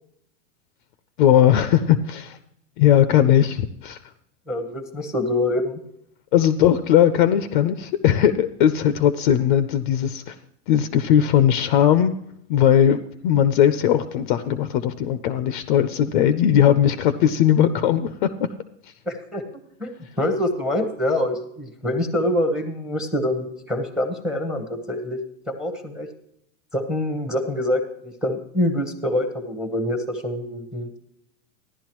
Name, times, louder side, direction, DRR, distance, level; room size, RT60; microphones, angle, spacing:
voice 1, 1.2-2.4 2.8-4.0 6.3-10.4 10.7-12.1 12.5-13.0 13.2-18.3, left 10 dB, 40° left, 11 dB, 0.5 m, -18 dB
voice 2, 4.5-5.8 19.1-19.4 19.8-25.2 25.5-26.1 26.7-31.0, left 1 dB, ahead, 7 dB, 0.8 m, -25 dB
15.0 x 11.0 x 3.0 m, 0.77 s
supercardioid pair, 155°, 40 cm